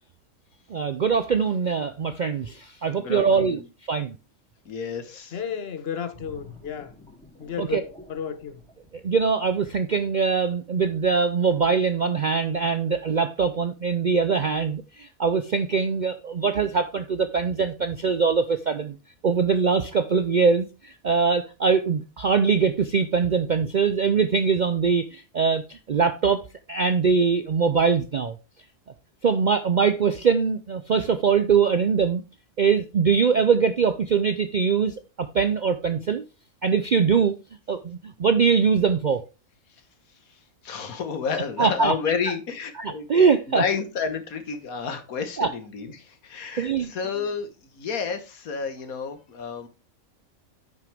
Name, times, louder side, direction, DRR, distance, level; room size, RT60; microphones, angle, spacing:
voice 1, 0.7-3.6 3.9-4.2 7.6-7.8 9.0-19.0 19.2-26.4 26.7-28.3 29.2-32.2 32.6-36.2 36.6-37.3 37.7-39.2 41.6-41.9 42.8-43.6 45.4-45.5 46.6-46.9, right 5 dB, 60° right, 0.5 m, -22 dB
voice 2, 3.0-3.7 4.7-5.4 40.6-43.1 43.5-49.7, left 6 dB, 85° left, 1.8 m, -30 dB
voice 3, 5.3-6.9 7.4-8.6, left 7 dB, 50° left, 1.1 m, -33 dB
sound 1, 6.1-9.7 10.1-10.4, left 2 dB, 5° left, 2.8 m, -49 dB
9.0 x 6.1 x 3.4 m
omnidirectional pair, 1.5 m